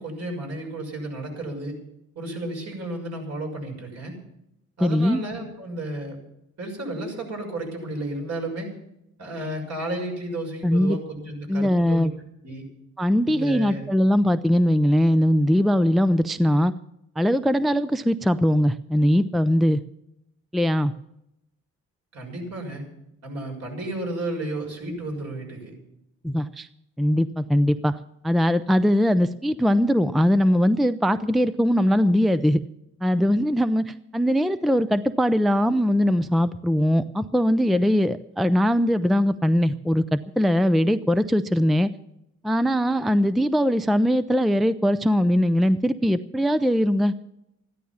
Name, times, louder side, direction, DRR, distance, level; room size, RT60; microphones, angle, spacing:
voice 1, 0.0-1.7 2.1-4.2 4.8-6.2 6.6-8.7 9.2-12.1 12.4-12.6 13.2-13.8 22.1-22.8 23.2-25.7, right 1 dB, 60° right, 2 dB, 6.4 m, -32 dB
voice 2, 4.8-5.2 10.6-11.0 11.5-12.1 13.0-16.7 17.2-19.8 20.5-20.9 26.2-26.7 27.0-27.9 28.2-32.6 33.0-41.9 42.4-47.1, equal, ahead, 14 dB, 0.5 m, -21 dB
14.5 x 11.5 x 7.2 m, 0.82 s
cardioid pair, 90°, 30 cm